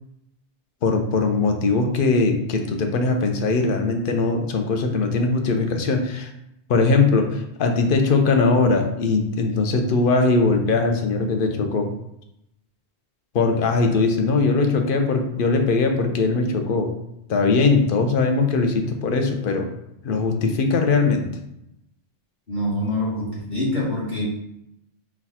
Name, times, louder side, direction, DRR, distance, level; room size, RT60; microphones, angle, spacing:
voice 1, 0.8-6.3 6.7-11.9 13.3-16.9 17.3-19.7 20.0-21.3, left 3 dB, 55° left, 4 dB, 0.7 m, -20 dB
voice 2, 22.5-24.2, left 1 dB, 40° left, -7 dB, 1.4 m, -25 dB
4.2 x 2.3 x 4.1 m, 0.82 s
omnidirectional pair, 1.2 m